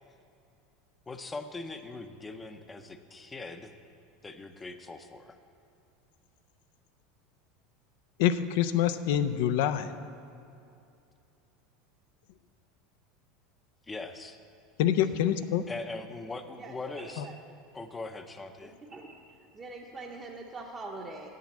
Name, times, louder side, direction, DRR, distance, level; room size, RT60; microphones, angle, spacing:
voice 1, 1.1-3.7 4.2-5.4 13.9-14.4 15.7-17.3 17.7-18.7, left 3 dB, 15° left, 8 dB, 0.6 m, -41 dB
voice 2, 8.2-9.9 14.8-15.6 17.2-17.3, left 10 dB, 75° left, 12 dB, 0.4 m, -26 dB
voice 3, 16.6-17.4 18.6-19.2 19.5-21.3, right 3 dB, 25° right, -1 dB, 0.8 m, -43 dB
7.5 x 7.5 x 7.2 m, 2.6 s
supercardioid pair, 115°, 0 cm